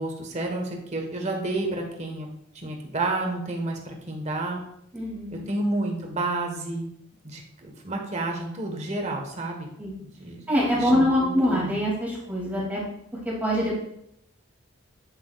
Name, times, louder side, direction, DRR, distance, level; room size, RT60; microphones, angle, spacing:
voice 1, 0.0-2.3 2.5-4.6 5.3-6.9 7.2-9.7 10.0-10.5 10.7-11.7, right 2 dB, 35° right, 1 dB, 1.4 m, -30 dB
voice 2, 4.9-5.4 9.8-10.0 10.5-12.8 13.2-13.8, equal, 10° right, -6 dB, 2.7 m, -24 dB
8.8 x 8.0 x 2.5 m, 0.76 s
head